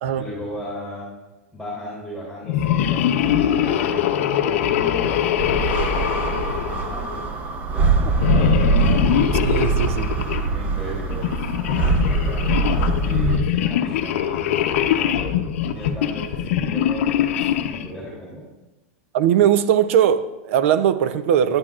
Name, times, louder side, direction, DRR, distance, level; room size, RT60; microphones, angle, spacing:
voice 1, 0.1-1.1 1.5-7.2 7.7-9.1 10.4-12.6 13.0-15.3 15.7-18.4, equal, 5° right, 3.1 m, -35 dB
sound 1, 2.4-7.3 8.1-10.5 11.1-17.9, left 10 dB, 70° left, 0.6 m, -22 dB
sound 2, 5.4-13.4, right 4 dB, 20° right, 0.7 m, -23 dB
voice 2, 9.4-10.1 19.1-21.6, right 9 dB, 65° right, 0.6 m, -19 dB
10.5 x 10.5 x 2.5 m
supercardioid pair, 150°, 7 cm